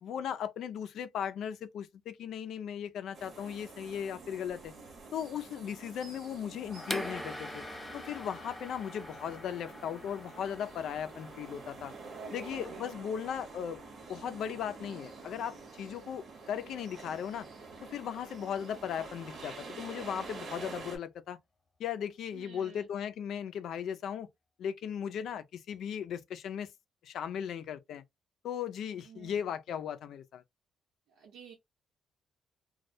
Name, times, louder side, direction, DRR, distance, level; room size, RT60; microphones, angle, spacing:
voice 1, 0.0-4.7 5.1-7.6 7.9-11.9 12.3-13.8 14.1-17.5 17.9-21.4 21.8-24.3 24.6-26.7 27.0-28.0 28.4-30.4, left 8 dB, 75° left, 0.4 m, -37 dB
sound 1, 3.1-21.0, right 4 dB, 60° right, 1.0 m, -48 dB
Gong, 6.6-16.2, left 2 dB, 20° left, 1.0 m, -51 dB
sound 2, 6.8-12.4, equal, ahead, 0.4 m, -44 dB
voice 2, 12.1-12.9 22.3-22.9 29.0-29.4 31.1-31.5, right 6 dB, 85° right, 0.9 m, -50 dB
2.2 x 2.1 x 2.6 m
cardioid pair, 90°, 0 cm